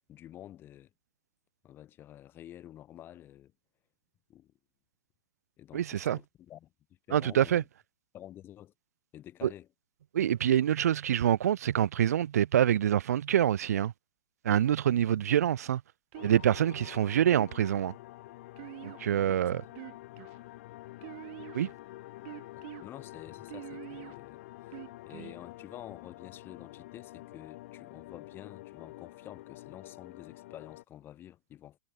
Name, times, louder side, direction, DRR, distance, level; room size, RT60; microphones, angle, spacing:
voice 1, 0.1-0.9 1.6-3.5 4.3-4.5 5.6-6.7 7.1-7.7 8.1-8.7 9.1-9.7 19.3-19.5 22.5-24.8 25.1-31.8, left 12 dB, 25° left, 2.0 m, -49 dB
voice 2, 5.7-6.2 7.1-7.6 9.4-9.5 10.1-13.9 14.4-15.8 16.2-17.9 18.8-19.6 21.5-21.7, right 10 dB, 90° right, 0.4 m, -26 dB
sound 1, 16.1-30.8, left 17 dB, 55° left, 0.8 m, -48 dB
sound 2, 16.1-16.7 17.3-17.9 18.6-19.3 19.7-20.4 21.0-21.7 22.3-22.8 23.5-24.1 24.7-25.4, right 23 dB, 50° right, 1.3 m, -45 dB
hypercardioid pair, 140°, 8 cm